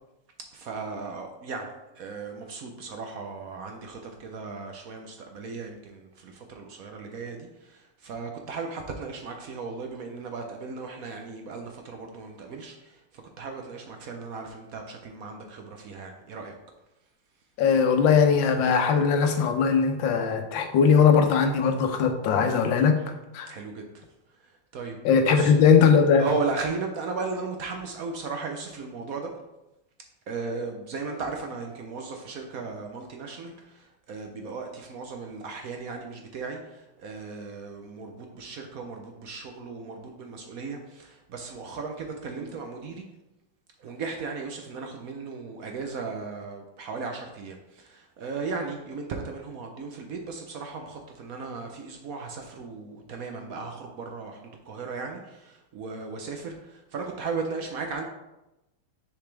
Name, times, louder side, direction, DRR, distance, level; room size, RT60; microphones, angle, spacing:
voice 1, 0.5-1.7 2.0-13.0 13.4-16.5 23.5-24.0 24.7-25.0 25.3-25.5 26.2-29.3 30.3-43.1 43.8-58.0, right 4 dB, 65° right, 3 dB, 1.0 m, -36 dB
voice 2, 17.6-23.5 25.0-26.3, left 6 dB, 90° left, 6 dB, 1.5 m, -20 dB
6.6 x 5.0 x 3.3 m, 0.94 s
omnidirectional pair, 2.0 m